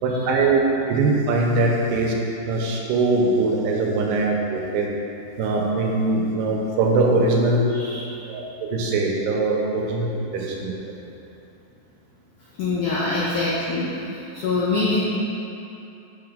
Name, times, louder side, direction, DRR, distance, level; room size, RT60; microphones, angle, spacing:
voice 1, 0.0-0.6 0.9-2.1 2.5-4.9 5.4-7.7 8.3-8.4 8.7-10.7, right 3 dB, 85° right, -1 dB, 2.8 m, -21 dB
voice 2, 7.7-8.0 12.6-13.9 14.3-15.0, left 3 dB, 80° left, -7 dB, 1.8 m, -24 dB
8.9 x 5.4 x 3.7 m, 2.8 s
omnidirectional pair, 4.8 m